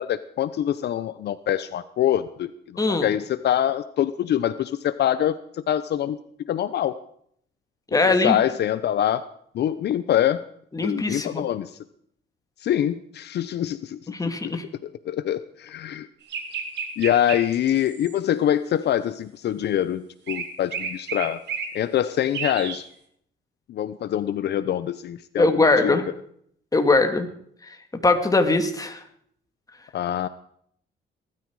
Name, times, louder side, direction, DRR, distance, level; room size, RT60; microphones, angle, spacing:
voice 1, 0.0-6.9 8.0-9.3 9.5-10.4 10.8-11.8 12.6-14.1 15.1-16.1 17.0-21.4 21.7-22.8 23.7-26.0 29.9-30.3, left 11 dB, 65° left, 14 dB, 0.8 m, -25 dB
voice 2, 2.8-3.1 7.9-8.4 10.7-11.4 14.1-14.6 25.4-26.0 26.7-27.3 28.0-29.0, left 3 dB, 20° left, 6 dB, 2.4 m, -21 dB
sound 1, 16.3-18.2 20.3-21.7 22.3-22.8, right 6 dB, 70° right, 3.4 m, -31 dB
19.5 x 13.0 x 4.8 m, 0.65 s
cardioid pair, 95°, 18 cm